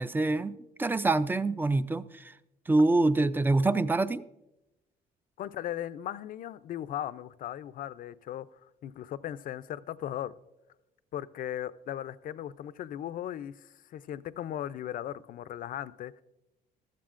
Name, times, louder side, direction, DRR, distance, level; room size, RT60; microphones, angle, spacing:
voice 1, 0.0-2.3 2.7-4.2, right 2 dB, 10° right, 0.4 m, -26 dB
voice 2, 5.4-8.5 8.8-10.3 11.1-16.1, left 11 dB, 55° left, 0.5 m, -37 dB
15.0 x 13.0 x 2.5 m
cardioid pair, 110°, 17 cm